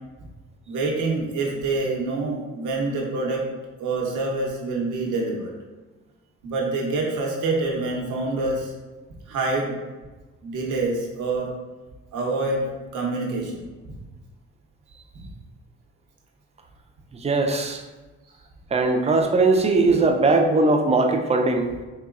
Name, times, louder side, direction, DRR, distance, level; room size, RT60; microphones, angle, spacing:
voice 1, 0.7-3.4 3.8-5.5 6.4-8.7 9.3-9.7 10.4-11.5 12.1-13.7, right 3 dB, 90° right, -1 dB, 0.8 m, -26 dB
voice 2, 17.2-17.8 18.7-21.7, right 3 dB, 20° right, 3 dB, 0.4 m, -20 dB
4.1 x 2.9 x 2.4 m, 1.2 s
cardioid pair, 90°, 30 cm